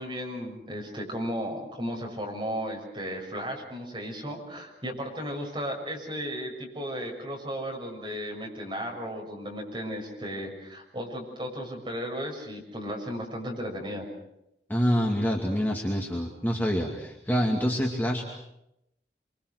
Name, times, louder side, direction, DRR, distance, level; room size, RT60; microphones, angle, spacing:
voice 1, 0.0-14.1, equal, 30° right, 0 dB, 6.5 m, -35 dB
voice 2, 14.7-18.3, equal, 10° left, -1 dB, 2.4 m, -26 dB
26.0 x 25.0 x 6.5 m, 0.83 s
head